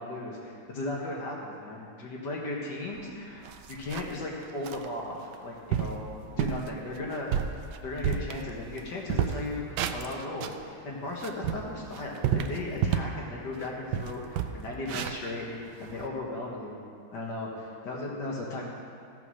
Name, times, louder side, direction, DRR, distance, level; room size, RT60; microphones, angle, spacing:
voice 1, 0.0-6.0 6.3-7.3 7.8-9.6 9.9-16.8 17.1-18.6, left 2 dB, 65° left, -2 dB, 1.9 m, -36 dB
sound 1, 3.0-3.1 3.4-4.2 4.6-4.9 5.3-5.4 5.7-6.0 6.4-6.7 7.1-8.8 9.1-10.6 11.1-13.2 13.6-13.7 13.9-16.1, right 8 dB, 75° right, 1.1 m, -30 dB
15.0 x 5.7 x 6.2 m, 2.3 s
omnidirectional pair, 2.0 m